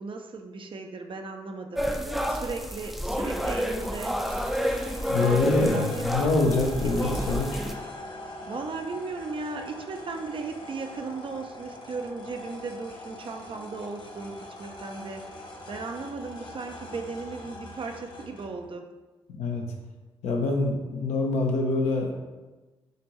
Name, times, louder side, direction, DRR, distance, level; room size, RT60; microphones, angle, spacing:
voice 1, 0.0-1.9 2.3-4.2 5.2-6.0 6.8-7.1 8.5-15.4 15.7-18.9, right 4 dB, 45° right, 5 dB, 0.6 m, -36 dB
sound 1, 1.8-7.7, equal, ahead, 0.6 m, -29 dB
sound 2, 3.8-18.7, left 1 dB, 40° left, 0.9 m, -43 dB
voice 2, 5.1-7.6 19.4-19.7 20.2-22.2, left 3 dB, 70° left, 1 dB, 0.8 m, -25 dB
6.6 x 2.6 x 3.1 m, 1.2 s
hypercardioid pair, 45°, 12 cm